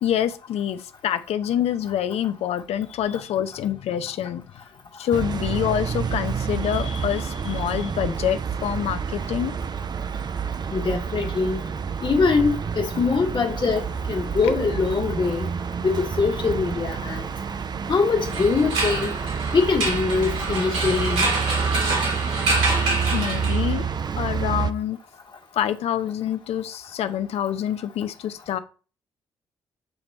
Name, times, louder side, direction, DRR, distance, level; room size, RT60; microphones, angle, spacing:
voice 1, 0.0-4.4 5.0-9.5 23.1-23.8 24.2-25.0 25.6-28.6, left 10 dB, 65° left, 0.6 m, -26 dB
sound 1, 5.1-24.7, right 6 dB, 40° right, 0.5 m, -28 dB
voice 2, 10.7-11.6 12.0-15.5 15.8-17.3 17.9-19.1 19.5-21.3, left 4 dB, 45° left, 1.5 m, -23 dB
sound 2, 18.2-23.9, right 2 dB, 75° right, 2.4 m, -26 dB
7.8 x 3.0 x 4.2 m
hypercardioid pair, 40°, 11 cm